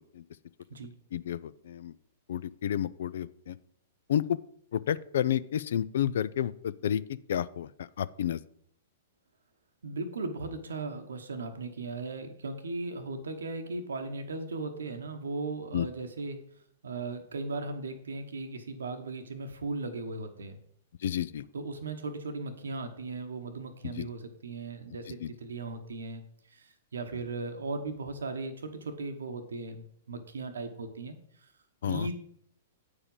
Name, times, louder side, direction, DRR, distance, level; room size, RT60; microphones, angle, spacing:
voice 1, 1.1-1.9 2.3-3.6 4.1-4.4 4.7-7.0 7.3-8.4 15.7-15.9 21.0-21.4 23.8-24.1 25.2-25.3 31.8-32.1, left 10 dB, 65° left, 18 dB, 0.4 m, -30 dB
voice 2, 9.8-16.4 16.8-20.6 21.5-26.2 26.5-31.2 31.4-31.5 31.8-32.1, right 3 dB, 75° right, 7 dB, 0.9 m, -37 dB
8.6 x 4.9 x 5.4 m, 0.68 s
hypercardioid pair, 110°, 0 cm